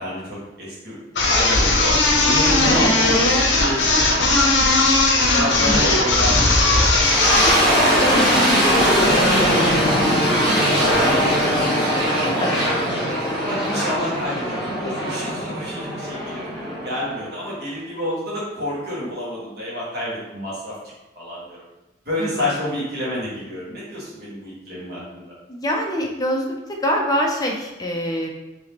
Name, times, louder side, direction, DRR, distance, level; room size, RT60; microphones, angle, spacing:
voice 1, 0.0-2.0 2.2-4.7 5.2-8.9 9.1-11.6 12.0-12.3 13.1-20.7 21.1-21.6 22.0-25.2, left 1 dB, 55° right, -7 dB, 1.3 m, -29 dB
sound 1, 1.2-7.6, left 2 dB, 75° left, 0.6 m, -17 dB
voice 2, 2.6-3.0 5.6-5.9 12.4-12.7 22.2-22.5 25.5-28.3, equal, 20° left, 1 dB, 0.4 m, -24 dB
sound 2, 6.6-17.5, equal, 5° right, 1.1 m, -20 dB
3.4 x 2.9 x 2.9 m, 0.98 s
head